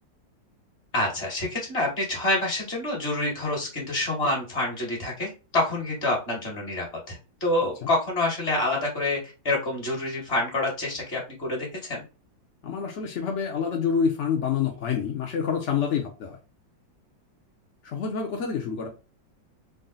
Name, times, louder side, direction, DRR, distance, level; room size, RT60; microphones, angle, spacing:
voice 1, 0.9-12.0, left 2 dB, 35° left, 1.8 m, -27 dB
voice 2, 12.6-16.4 17.8-18.9, left 6 dB, 65° left, 0.7 m, -27 dB
3.9 x 2.1 x 3.8 m
omnidirectional pair, 2.0 m